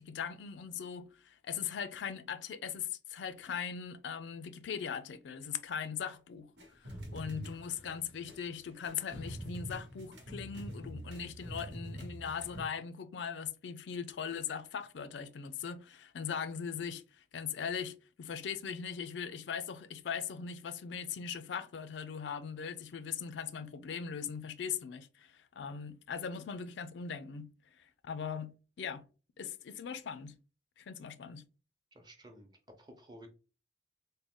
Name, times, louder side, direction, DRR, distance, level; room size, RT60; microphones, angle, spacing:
voice 1, 0.0-29.1 29.4-30.4 30.8-31.4, left 7 dB, 90° left, 0.4 m, -40 dB
sound 1, 6.6-12.6, equal, 85° right, 1.1 m, -45 dB
voice 2, 31.9-32.5 32.8-33.3, right 1 dB, 25° right, 0.7 m, -53 dB
3.6 x 2.1 x 3.6 m
head